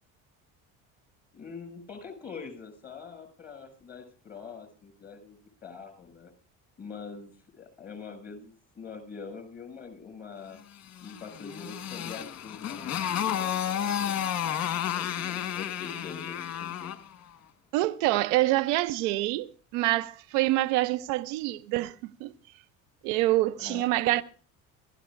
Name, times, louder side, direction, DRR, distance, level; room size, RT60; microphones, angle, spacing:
voice 1, 1.3-6.3 6.8-10.6 11.0-16.9 23.6-24.2, left 5 dB, 25° left, 6.6 m, -44 dB
Motorcycle, 11.0-17.1, left 10 dB, 45° left, 1.6 m, -31 dB
voice 2, 17.7-22.3 23.0-24.4, right 17 dB, 85° right, 0.7 m, -26 dB
25.0 x 15.0 x 2.5 m
supercardioid pair, 85°, 36 cm